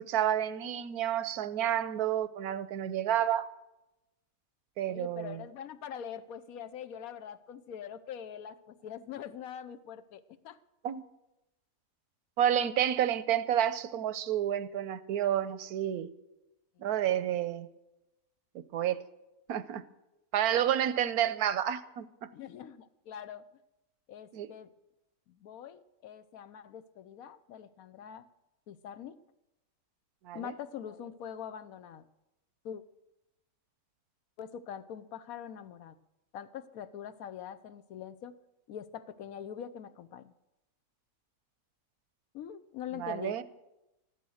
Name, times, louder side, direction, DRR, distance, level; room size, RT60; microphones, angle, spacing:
voice 1, 0.0-3.5 4.8-5.4 10.8-11.0 12.4-16.1 16.8-17.7 18.7-19.0 19.5-19.8 20.3-22.3 24.3-24.5 30.2-30.5 42.9-43.4, right 10 dB, 85° right, 14 dB, 1.2 m, -30 dB
voice 2, 4.9-10.6 16.8-17.3 22.3-23.4 24.1-24.7 25.3-28.3 28.7-29.2 30.3-32.0 32.6-32.8 34.4-36.0 36.3-38.4 38.7-40.3 42.3-43.4, left 9 dB, 70° left, 12 dB, 1.2 m, -43 dB
14.5 x 11.5 x 6.4 m, 0.95 s
omnidirectional pair, 1.6 m